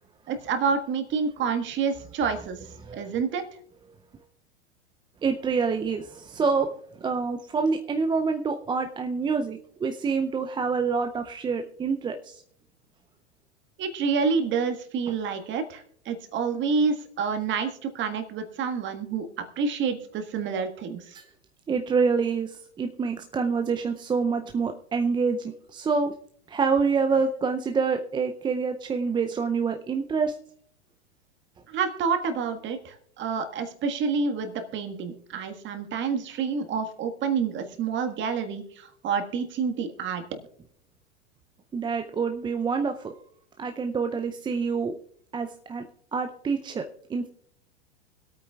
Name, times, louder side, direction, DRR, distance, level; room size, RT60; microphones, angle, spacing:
voice 1, 0.3-2.6 2.9-3.4 13.8-19.3 19.6-21.2 31.7-40.2, right 5 dB, 35° right, 6 dB, 1.6 m, -28 dB
voice 2, 5.2-6.7 7.0-12.4 21.7-22.5 22.8-26.1 26.5-30.3 41.7-43.1 43.6-44.9 45.3-45.8 46.1-46.8 47.1-47.3, right 5 dB, 15° right, 5 dB, 0.5 m, -26 dB
25.0 x 8.8 x 2.4 m, 0.66 s
hypercardioid pair, 100°, 34 cm